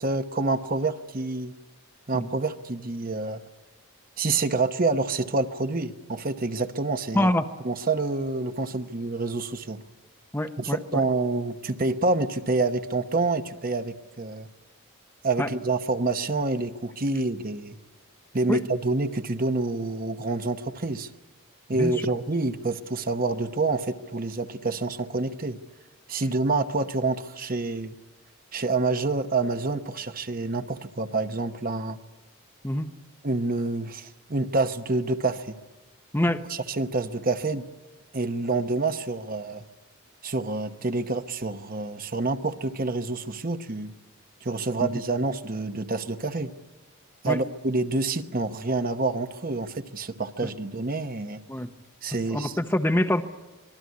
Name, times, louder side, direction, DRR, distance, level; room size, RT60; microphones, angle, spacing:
voice 1, 0.0-1.5 2.1-3.4 4.2-7.3 7.6-9.8 10.6-14.5 15.2-17.8 18.3-21.1 21.7-25.6 26.1-27.9 28.5-32.0 33.2-35.6 36.5-37.7 38.1-39.6 40.2-43.9 44.4-46.5 47.2-51.4 52.0-52.6, right 3 dB, 40° right, 8 dB, 1.0 m, -27 dB
voice 2, 7.1-7.5 10.3-11.0 15.4-15.5 18.5-18.6 21.8-21.9 32.6-32.9 36.1-36.4 44.8-44.9 47.3-47.4 51.5-51.7 52.3-53.2, left 1 dB, 10° left, 7 dB, 0.8 m, -25 dB
25.5 x 20.5 x 9.5 m, 1.2 s
head